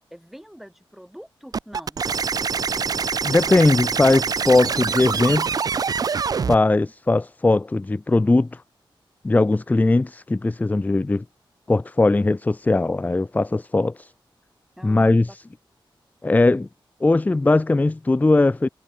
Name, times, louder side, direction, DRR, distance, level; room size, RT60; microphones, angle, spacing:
voice 1, 0.1-2.0 14.8-15.4, equal, ahead, 7.7 m, -44 dB
sound 1, 1.5-6.6, right 6 dB, 45° right, 0.5 m, -25 dB
voice 2, 3.2-5.6 6.4-8.6 9.2-11.2 11.7-14.1 14.8-15.4 16.2-16.7 17.0-18.7, left 2 dB, 20° left, 0.6 m, -19 dB
wide cardioid pair, 120°, 9 cm